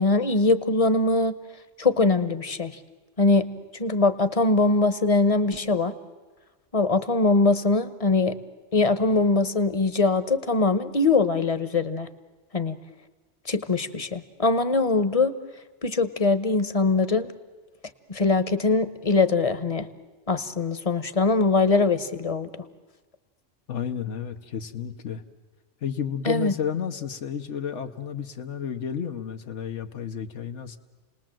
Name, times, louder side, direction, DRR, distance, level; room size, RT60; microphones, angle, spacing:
voice 1, 0.0-1.4 1.8-2.8 3.2-5.9 6.7-8.4 8.7-12.1 12.5-12.8 13.5-15.4 15.8-17.3 18.1-19.9 20.3-22.5 26.3-26.5, left 3 dB, 35° left, 12 dB, 1.0 m, -22 dB
voice 2, 23.7-25.2 25.8-30.8, left 8 dB, 80° left, 5 dB, 1.3 m, -31 dB
29.5 x 19.5 x 7.6 m, 1.3 s
omnidirectional pair, 1.2 m